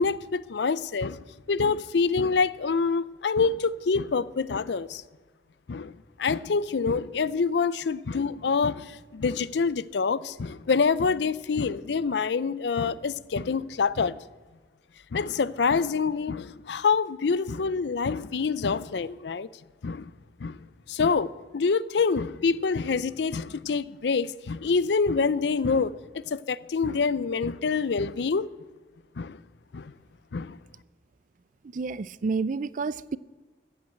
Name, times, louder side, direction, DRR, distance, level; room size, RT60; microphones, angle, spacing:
voice 1, 0.0-5.0 5.7-5.9 6.2-14.2 15.1-19.5 19.8-20.1 20.4-20.6 20.9-28.5 29.2-29.4 29.7-29.9 30.3-30.6, left 5 dB, 75° left, 0.5 m, -26 dB
voice 2, 31.7-33.2, right 4 dB, 45° right, 0.4 m, -29 dB
15.0 x 8.7 x 7.9 m
head